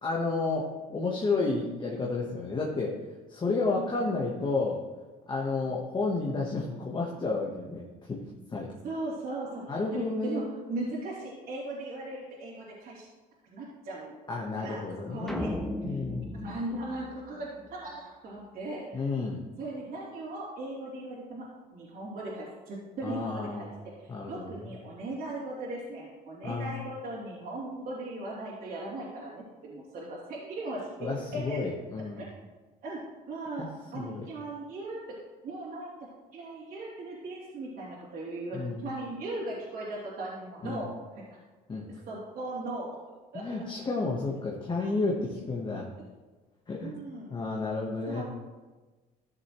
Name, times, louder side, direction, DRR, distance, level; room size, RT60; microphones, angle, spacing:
voice 1, 0.0-3.0 3.3-4.8 5.3-8.2 8.5-8.7 9.7-10.5 14.3-15.6 15.8-16.4 18.9-19.4 23.0-23.7 24.1-24.6 26.4-26.7 31.0-32.2 33.6-33.7 33.9-34.2 38.5-38.8 40.6-40.8 41.7-41.8 43.3-45.9 46.7-47.0 47.3-48.2, left 3 dB, 25° left, -2 dB, 1.2 m, -31 dB
voice 2, 8.8-13.1 13.4-14.2 14.6-14.8 15.1-15.5 15.9-16.0 16.3-19.0 19.6-21.5 21.7-23.7 24.0-31.6 32.2-32.3 32.8-33.0 33.3-33.7 33.9-35.2 35.4-35.9 36.3-41.2 41.9-43.0 43.3-43.5 46.8-47.3 48.1-48.2, right 2 dB, 60° right, -7 dB, 3.0 m, -38 dB
sound 1, 15.3-17.7, left 1 dB, 5° left, 1.1 m, -36 dB
13.5 x 6.6 x 3.1 m, 1.3 s
cardioid pair, 110°, 17 cm